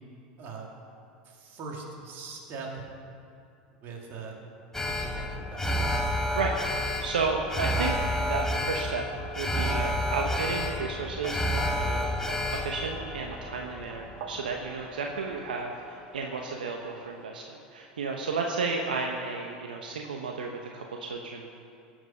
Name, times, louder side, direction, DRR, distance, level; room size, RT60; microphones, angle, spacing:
voice 1, 0.4-0.7 1.2-3.0 3.7-4.4 4.8-6.1, right 4 dB, 50° right, 0 dB, 2.8 m, -41 dB
Alarm, 4.7-15.0 15.3-15.4, left 1 dB, 10° left, 1.4 m, -30 dB
voice 2, 6.3-21.5, right 4 dB, 85° right, 1 dB, 1.0 m, -33 dB
sound 1, 9.7-17.2, right 5 dB, 65° right, 1.4 m, -47 dB
17.0 x 7.9 x 5.7 m, 2.5 s
hypercardioid pair, 90°, 5 cm